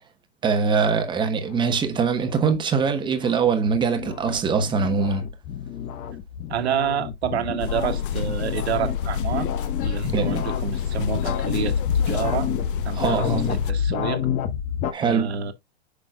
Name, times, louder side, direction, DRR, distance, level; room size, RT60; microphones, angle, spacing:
voice 1, 0.4-5.3 10.1-10.4 12.9-13.4 14.9-15.3, right 5 dB, 15° right, 1.1 m, -23 dB
sound 1, 1.0-14.9, left 7 dB, 25° left, 0.9 m, -29 dB
voice 2, 6.5-9.5 9.8-12.5 12.8-14.3 15.0-15.5, right 7 dB, 75° right, 1.7 m, -28 dB
sound 2, 7.6-13.7, left 9 dB, 55° left, 0.9 m, -29 dB
8.9 x 6.0 x 2.3 m
hypercardioid pair, 140°, 33 cm